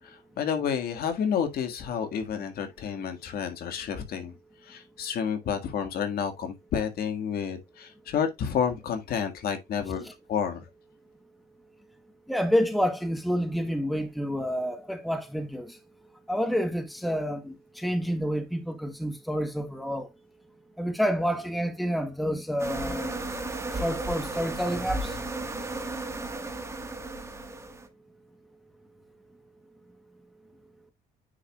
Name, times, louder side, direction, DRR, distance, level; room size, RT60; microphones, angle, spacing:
voice 1, 0.0-4.3 4.6-10.7, left 7 dB, 65° left, 1.8 m, -30 dB
voice 2, 12.3-15.8 16.3-20.1 20.8-23.2 23.7-25.2, equal, ahead, 1.1 m, -29 dB
sound 1, 22.6-27.9, right 2 dB, 15° right, 1.5 m, -34 dB
9.6 x 4.7 x 2.3 m
cardioid pair, 110°, 17 cm